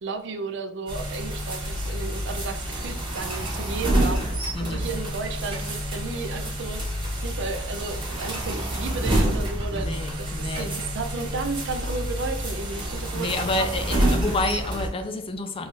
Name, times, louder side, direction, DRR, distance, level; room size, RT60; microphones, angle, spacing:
voice 1, 0.0-13.7, right 4 dB, 65° right, 7 dB, 0.5 m, -34 dB
sound 1, 0.9-14.9, right 1 dB, 25° right, 1.2 m, -28 dB
voice 2, 4.5-4.9 9.7-10.7 13.1-15.7, left 2 dB, 30° left, 7 dB, 0.4 m, -29 dB
4.0 x 2.4 x 3.1 m, 0.85 s
head